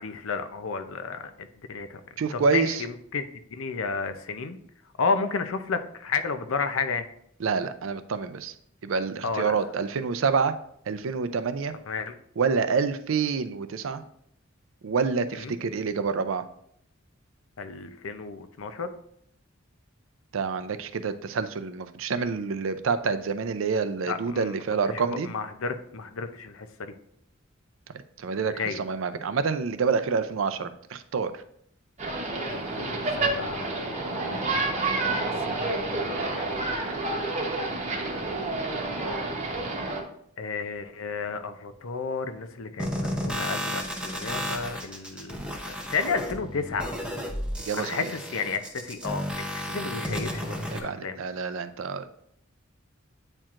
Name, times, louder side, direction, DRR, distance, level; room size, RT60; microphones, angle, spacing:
voice 1, 0.0-2.0 2.3-3.2 3.5-4.6 5.0-7.1 9.2-9.6 11.9-12.2 15.3-15.6 17.6-18.9 24.1-24.6 24.9-26.9 28.5-28.8 32.5-35.1 35.5-36.7 37.7-37.9 40.4-45.4 45.7-46.9 47.7-51.2, left 4 dB, 80° left, 9 dB, 0.6 m, -32 dB
voice 2, 2.2-2.8 7.4-8.5 8.8-10.5 10.9-11.7 12.4-14.0 14.8-16.4 20.3-25.3 28.2-31.3 47.7-48.1 50.7-52.1, right 5 dB, 70° right, 11 dB, 0.4 m, -27 dB
sound 1, 32.0-40.0, right 2 dB, 35° right, 0.9 m, -29 dB
sound 2, 42.8-50.8, equal, 5° right, 0.7 m, -33 dB
8.7 x 4.5 x 2.5 m, 0.70 s
head